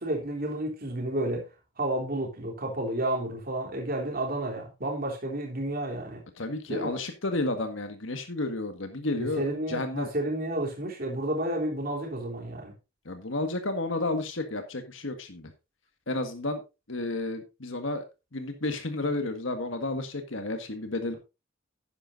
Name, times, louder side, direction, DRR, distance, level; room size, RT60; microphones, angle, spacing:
voice 1, 0.0-1.5 1.8-6.2 6.7-6.9 9.2-12.7, right 1 dB, 50° right, 3.4 m, -31 dB
voice 2, 6.4-10.1 13.1-15.5 16.1-16.6 16.9-18.0 18.3-21.1, left 2 dB, 75° left, 1.7 m, -31 dB
11.5 x 10.0 x 2.6 m
head